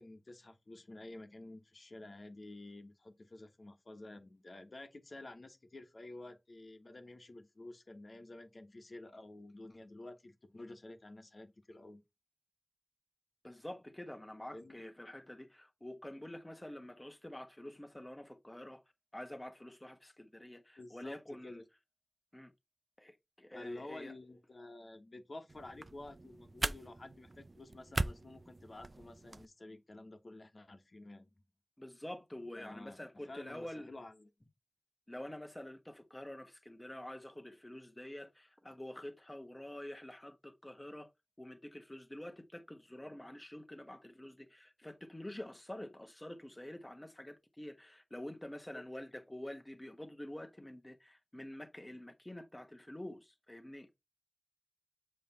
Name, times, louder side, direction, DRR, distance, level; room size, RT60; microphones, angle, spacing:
voice 1, 0.0-12.0 14.5-14.7 20.8-21.7 23.5-31.3 32.5-34.3 48.7-48.8, left 2 dB, 65° left, 1.3 m, -51 dB
voice 2, 13.4-18.8 19.1-21.6 22.3-22.5 23.0-24.1 31.8-33.9 35.1-41.1 41.4-53.9, left 1 dB, 20° left, 1.3 m, -47 dB
sound 1, 25.5-29.5, right 2 dB, 50° right, 0.5 m, -40 dB
7.6 x 3.3 x 4.2 m
wide cardioid pair, 70°, 0 cm